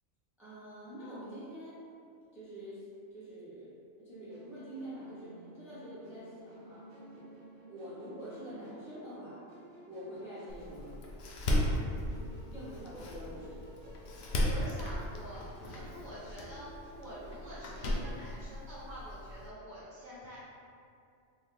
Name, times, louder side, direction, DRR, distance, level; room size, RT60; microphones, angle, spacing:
voice 1, 0.4-1.8 2.3-2.8 3.1-3.7 4.0-6.9 7.1-7.3 7.7-9.4 9.9-10.9 12.5-13.6, equal, ahead, -11 dB, 0.7 m, -46 dB
Musical instrument, 4.3-18.1, equal, 60° right, 0.5 m, -54 dB
Door, 10.5-19.5, left 1 dB, 60° left, 0.7 m, -36 dB
voice 2, 12.0-12.7 14.3-16.7 17.0-20.4, equal, 35° right, -10 dB, 1.3 m, -47 dB
4.1 x 2.8 x 3.2 m, 2.4 s
omnidirectional pair, 1.4 m